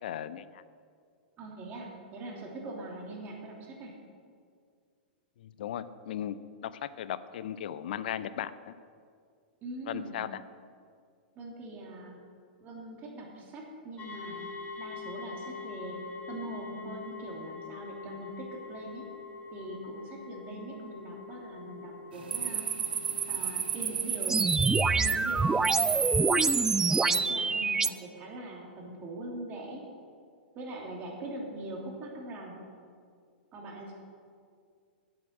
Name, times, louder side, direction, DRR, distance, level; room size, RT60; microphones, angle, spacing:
voice 1, 0.0-0.6 5.4-6.4 6.6-8.7 9.9-10.4, left 10 dB, 65° left, 15 dB, 0.5 m, -37 dB
voice 2, 1.4-4.0 9.6-10.2 11.3-12.2 12.6-14.5 14.8-19.1 19.5-22.7 23.3-24.5 24.9-26.1 26.9-29.8 30.5-32.7 33.5-33.9, right 2 dB, 35° right, -1 dB, 2.9 m, -42 dB
sound 1, 14.0-23.8, left 5 dB, 30° left, 1.7 m, -44 dB
sound 2, 22.1-27.1, right 8 dB, 75° right, 1.0 m, -33 dB
sound 3, 24.3-27.9, right 4 dB, 10° right, 0.3 m, -25 dB
9.3 x 7.9 x 7.4 m, 2.1 s
hypercardioid pair, 110°, 5 cm